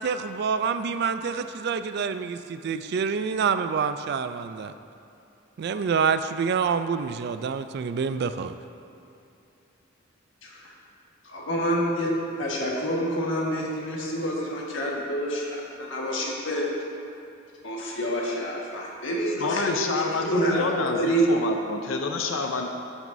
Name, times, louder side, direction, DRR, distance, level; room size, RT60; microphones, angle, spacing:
voice 1, 0.0-4.7 5.6-8.5, right 6 dB, 55° right, 11 dB, 0.3 m, -27 dB
voice 2, 10.4-10.7 11.2-12.1 12.4-15.5 15.8-16.7 17.6-20.7 21.0-21.2, equal, 70° left, -3 dB, 1.5 m, -28 dB
voice 3, 19.4-21.0 21.3-22.7, left 4 dB, 90° left, 3 dB, 0.6 m, -28 dB
13.5 x 6.1 x 2.6 m, 2.6 s
head